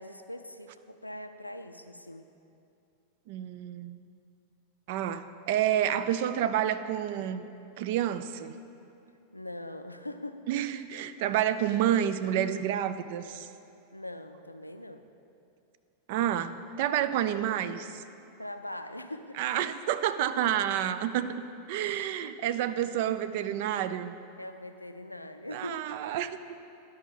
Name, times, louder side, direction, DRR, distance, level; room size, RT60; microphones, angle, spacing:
voice 1, 0.0-2.3 9.3-10.5 13.9-15.1 18.4-19.4 21.8-22.1 24.4-25.9, left 1 dB, 85° left, 8 dB, 0.4 m, -42 dB
voice 2, 3.3-4.0 4.9-7.5 7.8-8.5 10.5-13.5 16.1-18.0 19.4-24.1 25.5-26.3, right 10 dB, 50° right, 12 dB, 0.3 m, -29 dB
11.5 x 5.3 x 3.9 m, 2.6 s
figure-of-eight pair, 90°, 0 cm